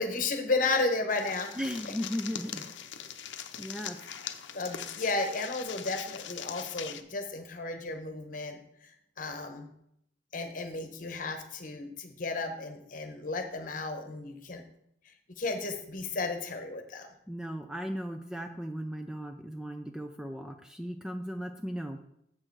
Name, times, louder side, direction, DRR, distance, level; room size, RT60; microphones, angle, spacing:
voice 1, 0.0-1.5 4.5-8.6 9.2-9.7 10.3-14.6 15.3-17.1, left 3 dB, 45° left, 6 dB, 1.1 m, -33 dB
sound 1, 1.1-7.0, left 9 dB, 80° left, 0.7 m, -41 dB
voice 2, 1.6-2.7 3.6-4.0 17.3-22.0, equal, 5° right, 5 dB, 0.4 m, -36 dB
7.5 x 6.5 x 4.8 m, 0.74 s
head